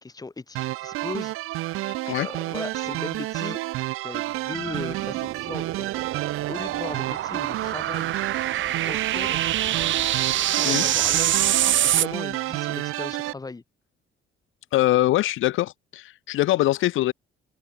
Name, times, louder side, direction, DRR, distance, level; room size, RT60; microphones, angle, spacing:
voice 1, 0.0-1.9 2.2-3.6 4.0-5.9 6.5-8.1 8.8-9.4 10.3-13.6, left 3 dB, 15° left, 2.5 m, -37 dB
sound 1, 0.6-13.3, right 17 dB, 85° right, 0.9 m, -30 dB
sound 2, 4.5-12.1, right 12 dB, 65° right, 1.7 m, -26 dB
sound 3, 7.1-12.3, equal, ahead, 7.3 m, -49 dB
voice 2, 14.7-17.1, left 15 dB, 70° left, 0.6 m, -23 dB
cardioid pair, 135°, 21 cm